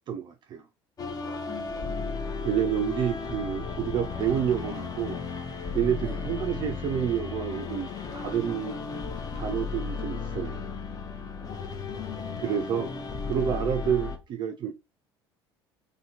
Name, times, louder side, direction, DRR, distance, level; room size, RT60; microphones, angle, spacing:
voice 1, 0.1-0.6 2.4-5.2 5.7-8.7 9.3-10.6 12.4-12.9 13.3-14.7, right 9 dB, 35° right, 0.3 m, -29 dB
sound 1, 1.0-14.2, left 5 dB, 30° left, 0.6 m, -34 dB
voice 2, 1.5-2.4 6.0-6.4 11.4-12.4, left 6 dB, 10° left, 1.0 m, -46 dB
2.7 x 2.6 x 2.7 m
figure-of-eight pair, 65°, 13 cm